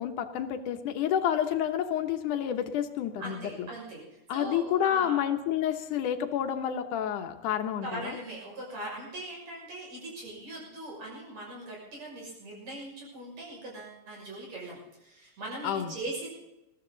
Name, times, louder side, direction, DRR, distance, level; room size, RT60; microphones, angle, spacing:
voice 1, 0.0-3.7 4.3-8.2 15.6-16.0, left 9 dB, 80° left, 7 dB, 2.7 m, -29 dB
voice 2, 3.2-4.0 4.3-5.2 7.8-16.4, right 1 dB, 60° right, -2 dB, 7.5 m, -40 dB
21.0 x 15.0 x 4.0 m, 0.95 s
omnidirectional pair, 3.5 m